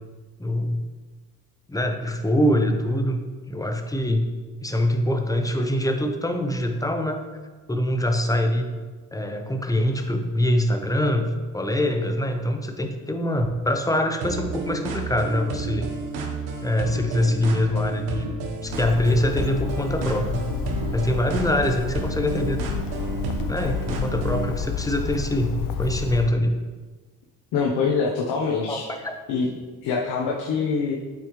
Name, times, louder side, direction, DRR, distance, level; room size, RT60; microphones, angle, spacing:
voice 1, 0.4-0.8 1.7-4.3 4.6-7.2 7.7-8.6 9.1-15.9 16.6-18.3 18.6-20.4 20.9-22.6 23.5-26.6 28.7-29.1, left 1 dB, 10° left, 5 dB, 0.8 m, -24 dB
sound 1, 14.2-24.5, right 3 dB, 80° right, 1.1 m, -31 dB
Bird, 18.7-26.3, left 6 dB, 60° left, 0.6 m, -30 dB
voice 2, 27.5-28.9 29.3-29.5 29.8-30.9, left 5 dB, 80° left, -2 dB, 1.0 m, -24 dB
8.3 x 5.3 x 3.1 m, 1.3 s
cardioid pair, 85°, 37 cm